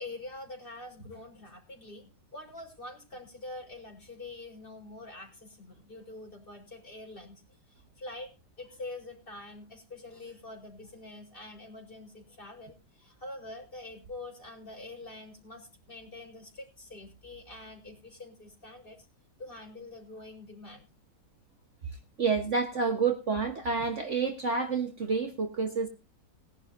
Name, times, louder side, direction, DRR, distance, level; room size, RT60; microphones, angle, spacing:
voice 1, 0.0-7.4 7.7-8.3 8.6-19.0 19.4-20.9, left 2 dB, 30° left, 1 dB, 4.8 m, -45 dB
voice 2, 22.2-25.9, right 5 dB, 45° right, 5 dB, 1.5 m, -29 dB
20.0 x 11.0 x 2.6 m, 0.30 s
omnidirectional pair, 1.8 m